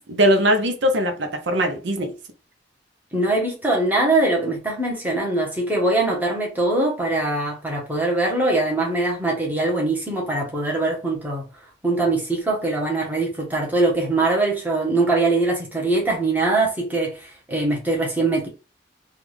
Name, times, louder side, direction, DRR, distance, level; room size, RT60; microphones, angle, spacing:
voice 1, 0.1-2.1, equal, 70° right, 0.6 m, -20 dB
voice 2, 3.1-11.4 11.8-18.5, right 2 dB, 10° right, 1.0 m, -22 dB
3.5 x 2.4 x 3.2 m
head